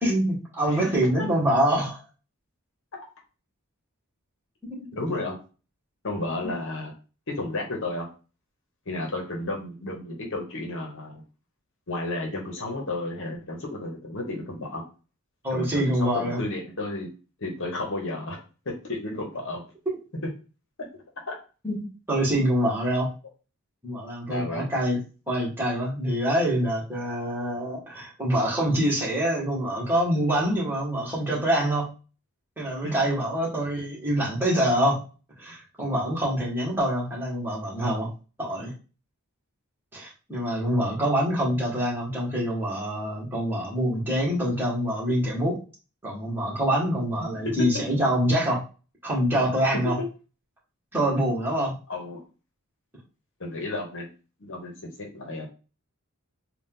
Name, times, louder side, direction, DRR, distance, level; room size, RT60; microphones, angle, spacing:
voice 1, 0.0-2.0 4.7-5.1 6.4-6.5 15.4-16.4 21.6-23.1 23.8-25.0 25.3-31.9 32.6-35.0 35.4-38.1 38.4-38.7 39.9-45.6 46.0-48.6 49.0-50.0 50.9-51.7, equal, 10° right, -6 dB, 1.7 m, -25 dB
voice 2, 4.9-5.4 6.0-6.9 7.4-8.1 8.9-11.2 11.9-14.8 15.5-17.1 17.4-19.6 21.3-21.4 24.3-24.7 32.8-33.1 50.0-50.1 51.9-52.2 53.4-54.1 54.4-54.7 55.0-55.5, left 2 dB, 60° left, 1 dB, 1.1 m, -32 dB
4.0 x 2.5 x 3.8 m, 0.34 s
head